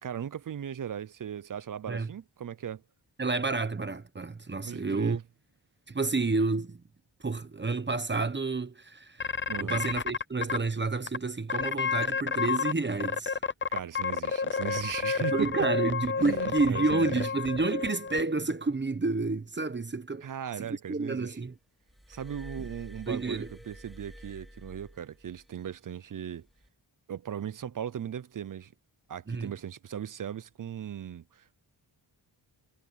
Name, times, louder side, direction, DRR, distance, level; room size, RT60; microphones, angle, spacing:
voice 1, 0.0-2.8 4.6-5.2 9.5-9.8 13.7-15.7 16.2-17.2 20.2-21.4 22.1-26.5 27.1-28.7 29.1-31.6, right 9 dB, 45° right, 0.5 m, -38 dB
voice 2, 3.2-5.2 5.9-6.8 7.2-9.3 9.6-13.4 15.3-20.3 20.6-21.5 23.1-23.5 29.3-29.5, right 3 dB, 25° right, 1.0 m, -30 dB
sound 1, 9.2-10.6 11.1-11.2 11.5-12.7 13.0-18.2, left 5 dB, 25° left, 0.6 m, -30 dB
Glass, 21.9-25.5 26.5-26.7, equal, ahead, 3.1 m, -48 dB
wide cardioid pair, 140°, 45 cm